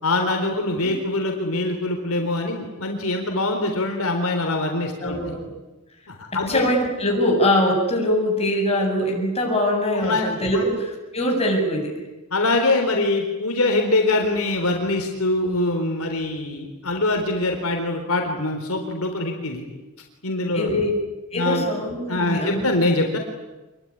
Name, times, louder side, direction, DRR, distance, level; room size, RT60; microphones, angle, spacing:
voice 1, 0.0-5.2 6.1-6.7 9.9-10.7 12.3-19.6 20.2-20.7 21.3-21.7 22.1-23.2, left 2 dB, 70° left, 3 dB, 3.9 m, -23 dB
voice 2, 5.0-5.5 6.3-11.9 20.5-20.9 21.3-22.7, left 1 dB, 30° left, 0 dB, 7.8 m, -23 dB
27.0 x 22.5 x 10.0 m, 1.1 s
head